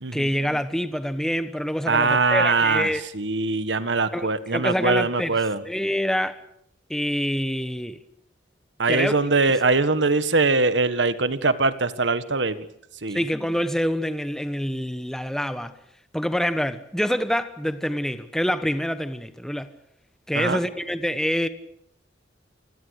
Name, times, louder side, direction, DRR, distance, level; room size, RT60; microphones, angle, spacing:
voice 1, 0.1-3.0 4.1-5.4 5.6-6.4 6.9-8.0 8.9-9.6 13.1-15.8 16.1-19.7 20.3-21.5, equal, 5° left, 1.1 m, -26 dB
voice 2, 1.9-2.9 3.1-5.6 8.8-12.6 13.0-13.2 20.4-20.6, right 3 dB, 70° right, 1.6 m, -22 dB
27.5 x 21.0 x 6.6 m
head